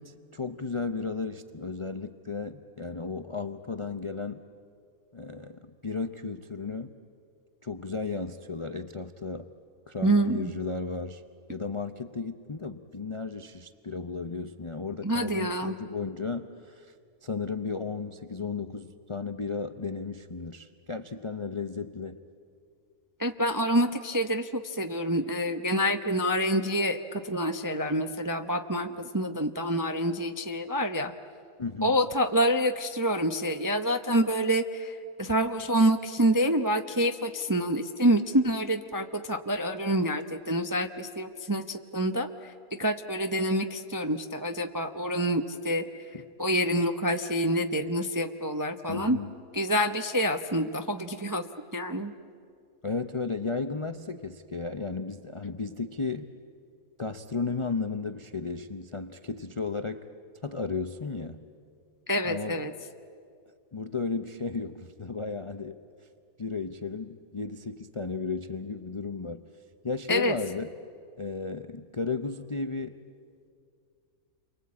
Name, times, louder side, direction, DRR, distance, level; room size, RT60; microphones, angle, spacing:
voice 1, 0.0-4.4 5.1-6.9 7.6-9.5 9.9-11.2 11.5-16.9 17.2-22.2 31.6-32.0 46.1-46.2 48.9-49.3 52.8-56.3 57.0-60.1 60.4-61.4 62.2-62.7 63.7-65.8 66.4-69.4 69.8-70.7 71.2-73.0, left 4 dB, 40° left, 9 dB, 0.4 m, -34 dB
voice 2, 10.0-10.5 15.0-15.7 23.2-31.1 31.8-42.5 42.8-45.8 46.4-49.2 49.5-51.4 51.7-52.1 62.1-62.7 70.1-70.3, equal, 25° right, 6 dB, 0.4 m, -27 dB
29.5 x 23.5 x 8.6 m, 2.3 s
omnidirectional pair, 1.6 m